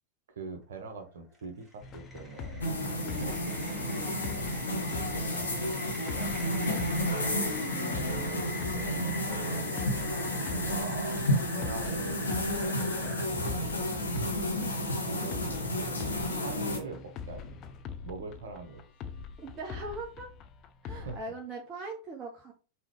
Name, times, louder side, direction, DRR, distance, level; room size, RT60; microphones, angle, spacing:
voice 1, 0.3-6.9 8.1-9.8 10.5-11.2 11.5-13.6 14.3-17.7 18.0-18.8 20.9-21.2, right 4 dB, 60° right, 5 dB, 1.2 m, -44 dB
sound 1, 1.3-13.3, equal, 10° right, 1.4 m, -46 dB
sound 2, 1.8-21.2, left 6 dB, 35° left, 0.5 m, -44 dB
sound 3, 2.6-16.8, left 1 dB, 75° left, 1.2 m, -31 dB
voice 2, 7.6-8.4 19.4-20.3 20.8-22.5, right 3 dB, 30° right, 1 dB, 0.9 m, -41 dB
5.5 x 3.1 x 3.0 m, 0.34 s
figure-of-eight pair, 90°, 0 cm